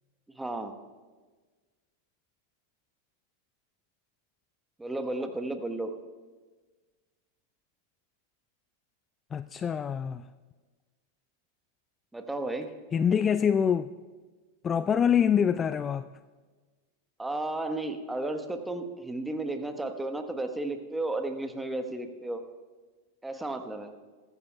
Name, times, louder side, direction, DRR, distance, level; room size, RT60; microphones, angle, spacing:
voice 1, 0.4-0.7 4.8-5.9 12.1-12.7 17.2-22.4 23.2-23.9, right 2 dB, 5° right, 1.1 m, -33 dB
voice 2, 9.3-10.2 12.9-13.9 14.6-16.0, left 8 dB, 20° left, 0.3 m, -25 dB
22.5 x 13.5 x 2.3 m
figure-of-eight pair, 90°, 0 cm